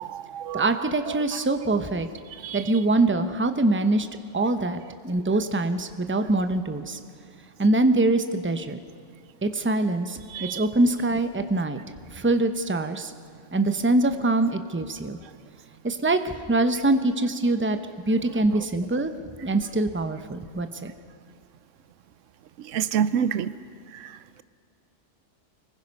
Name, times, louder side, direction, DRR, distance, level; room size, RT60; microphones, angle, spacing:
voice 1, 0.0-0.7 1.1-1.2 2.4-2.6 10.3-10.6 22.6-23.5 23.9-24.4, right 8 dB, 90° right, 14 dB, 1.0 m, -28 dB
voice 2, 0.5-2.1 2.5-4.1 4.3-7.0 7.6-8.8 9.4-11.8 12.1-13.1 13.5-15.2 15.8-17.8 18.1-19.2 19.4-20.9, right 2 dB, 10° right, 8 dB, 0.8 m, -24 dB
25.0 x 20.5 x 5.5 m, 2.4 s
omnidirectional pair, 1.2 m